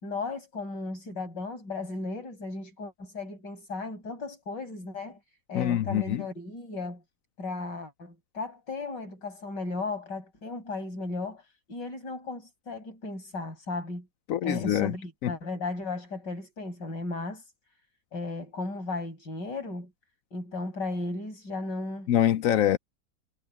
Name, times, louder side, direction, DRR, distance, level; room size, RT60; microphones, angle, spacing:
voice 1, 0.0-5.2 5.5-7.0 7.4-14.1 14.4-17.5 18.1-19.9 20.3-22.1, left 3 dB, 90° left, 7.1 m, -35 dB
voice 2, 5.5-6.2 14.3-14.9 15.2-15.3 22.1-22.8, left 11 dB, 65° left, 0.8 m, -24 dB
omnidirectional pair, 1.9 m